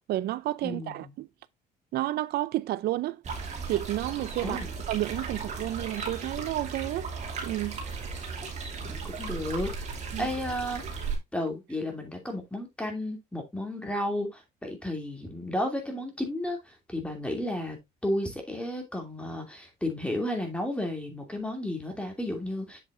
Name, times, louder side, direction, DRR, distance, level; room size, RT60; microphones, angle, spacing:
voice 1, 0.1-1.3 1.9-3.2 3.7-4.6 4.9-7.1 7.4-7.8 10.1-10.3, right 15 dB, 70° right, 0.6 m, -31 dB
voice 2, 0.6-1.1 4.4-4.7 8.9-9.7 10.2-11.0 11.3-17.8 18.0-22.8, left 1 dB, 5° left, 2.7 m, -33 dB
sound 1, 3.2-11.2, right 4 dB, 45° right, 2.8 m, -36 dB
8.0 x 6.6 x 2.6 m
cardioid pair, 110°, 17 cm